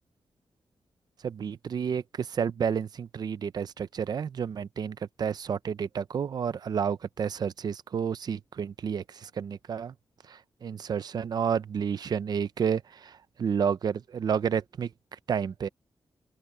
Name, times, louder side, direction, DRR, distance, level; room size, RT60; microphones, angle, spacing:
voice 1, 1.2-9.9 10.2-15.7, right 7 dB, 50° right, 0.6 m, -30 dB
open air
wide cardioid pair, 180°, 9 cm